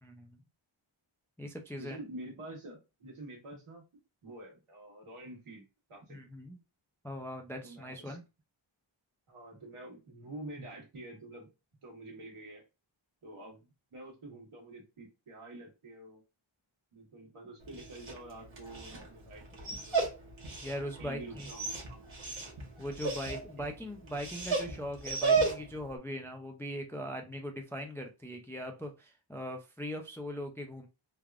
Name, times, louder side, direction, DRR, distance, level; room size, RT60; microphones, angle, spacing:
voice 1, 0.0-0.4 1.4-2.0 6.1-6.6 7.0-8.2 20.6-21.5 22.8-30.9, equal, 5° left, 4 dB, 0.3 m, -40 dB
voice 2, 1.8-3.8 4.2-5.6 5.9-6.2 7.6-8.2 9.3-11.5 11.8-12.6 13.2-16.2 16.9-20.1 21.0-22.1 23.6-23.7, right 2 dB, 90° right, -1 dB, 1.3 m, -47 dB
Dog, 17.6-25.9, right 4 dB, 70° right, 1.1 m, -35 dB
3.3 x 2.3 x 2.3 m, 0.27 s
wide cardioid pair, 95°, 49 cm